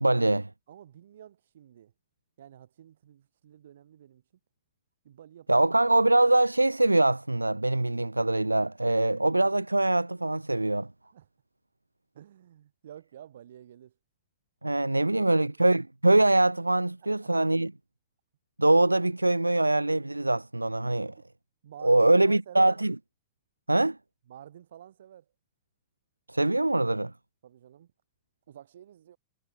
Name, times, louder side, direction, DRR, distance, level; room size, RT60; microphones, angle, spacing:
voice 1, 0.0-0.5 5.5-10.9 14.6-17.7 18.6-21.1 21.8-22.9 23.7-24.0 26.3-27.1, right 2 dB, 85° right, 0.7 m, -23 dB
voice 2, 0.7-1.9 2.4-4.2 5.0-5.9 10.6-10.7 11.1-11.3 12.1-13.9 17.0-17.5 21.6-22.8 24.3-25.3 27.4-27.9 28.5-29.2, right 10 dB, 60° right, 7.4 m, -50 dB
figure-of-eight pair, 90°, 0 cm